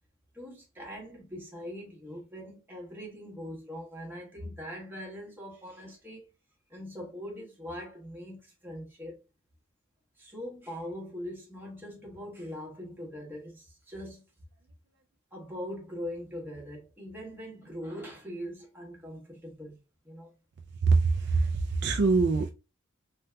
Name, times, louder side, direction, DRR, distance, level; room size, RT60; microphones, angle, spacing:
voice 1, 0.3-6.3 6.7-9.2 10.2-14.2 15.3-19.8 20.0-20.3, equal, 10° right, 1.1 m, -41 dB
voice 2, 20.8-21.5 21.8-22.5, right 4 dB, 55° right, 0.4 m, -23 dB
3.3 x 2.7 x 2.2 m
head